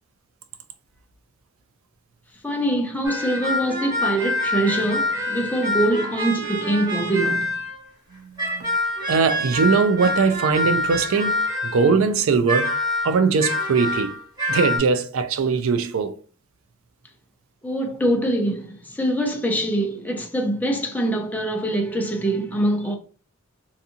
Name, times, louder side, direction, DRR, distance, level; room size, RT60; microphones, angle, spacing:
voice 1, 2.4-7.6 17.6-23.0, right 1 dB, 10° left, 0.5 m, -24 dB
sound 1, 3.0-7.8 8.4-12.0 12.5-14.8, left 2 dB, 20° right, 1.2 m, -26 dB
voice 2, 8.2-8.7 9.1-12.7 13.0-14.1 14.5-16.2, right 5 dB, 65° right, 0.4 m, -21 dB
2.6 x 2.4 x 2.7 m
head